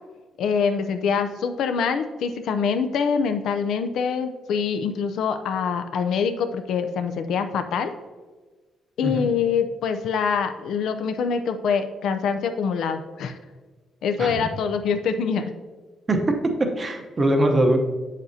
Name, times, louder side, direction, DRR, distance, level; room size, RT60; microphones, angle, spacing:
voice 1, 0.4-7.9 9.0-13.3 14.0-15.4, left 6 dB, 75° left, 8 dB, 0.5 m, -25 dB
voice 2, 16.6-17.8, right 1 dB, 25° right, 4 dB, 0.9 m, -22 dB
7.9 x 7.3 x 2.8 m, 1.3 s
cardioid pair, 130°, 0 cm